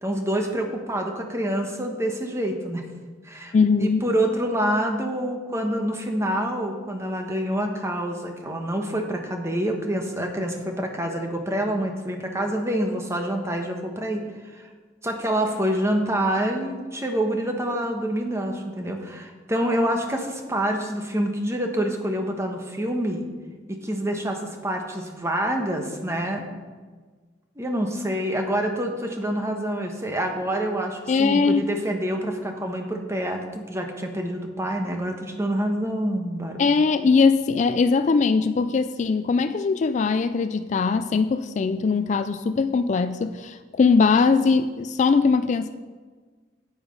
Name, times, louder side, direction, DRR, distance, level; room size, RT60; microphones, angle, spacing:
voice 1, 0.0-2.9 3.2-3.5 3.8-14.2 14.6-14.7 15.0-23.2 23.7-26.5 27.6-36.6, right 1 dB, 15° right, 3 dB, 1.1 m, -27 dB
voice 2, 3.5-4.0 31.1-31.7 36.6-45.7, left 4 dB, 40° left, 10 dB, 0.3 m, -21 dB
9.0 x 8.2 x 5.2 m, 1.4 s
head